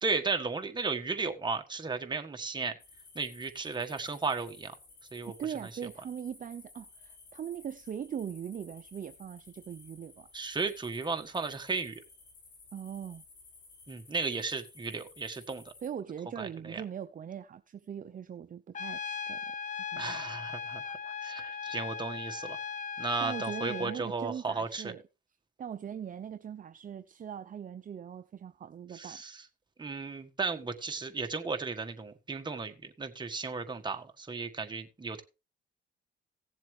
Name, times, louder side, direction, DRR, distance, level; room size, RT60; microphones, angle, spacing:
voice 1, 0.0-2.7 3.2-4.7 5.1-5.3 10.3-12.0 13.9-15.7 16.4-16.8 20.0-22.6 23.0-24.9 28.9-29.4 29.8-35.2, right 4 dB, 20° right, 1.6 m, -35 dB
sound 1, 2.8-15.9, left 4 dB, 65° left, 5.9 m, -56 dB
voice 2, 5.2-10.3 12.7-13.2 15.8-19.4 19.9-20.0 23.2-25.0 25.6-29.2, right 8 dB, 40° right, 0.7 m, -40 dB
Trumpet, 18.8-24.0, left 6 dB, 40° left, 0.7 m, -38 dB
17.0 x 7.4 x 3.3 m
cardioid pair, 90°, 20 cm